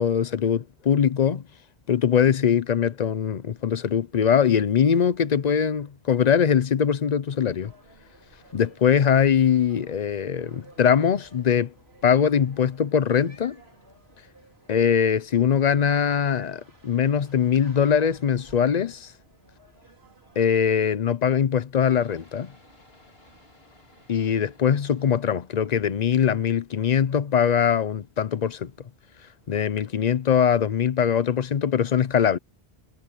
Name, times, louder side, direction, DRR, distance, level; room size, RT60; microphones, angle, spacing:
voice 1, 0.0-1.5 1.9-7.7 8.5-11.7 12.0-13.6 14.7-19.1 20.4-22.5 24.1-28.7 29.5-32.4, left 8 dB, 45° left, 0.7 m, -22 dB
sound 1, 7.3-20.5, right 1 dB, 75° right, 5.6 m, -55 dB
sound 2, 21.9-30.6, left 1 dB, 70° left, 4.9 m, -59 dB
omnidirectional pair, 1.1 m